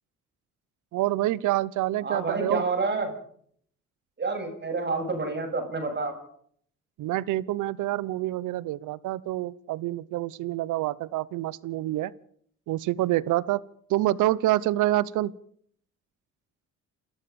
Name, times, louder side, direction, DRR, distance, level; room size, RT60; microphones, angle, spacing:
voice 1, 0.9-2.6 7.0-12.1 12.7-13.6 13.9-15.3, right 15 dB, 90° right, 21 dB, 0.9 m, -27 dB
voice 2, 2.0-3.1 4.2-6.1, right 3 dB, 35° right, 4 dB, 7.6 m, -28 dB
28.5 x 14.0 x 7.0 m, 0.63 s
cardioid pair, 90°, 30 cm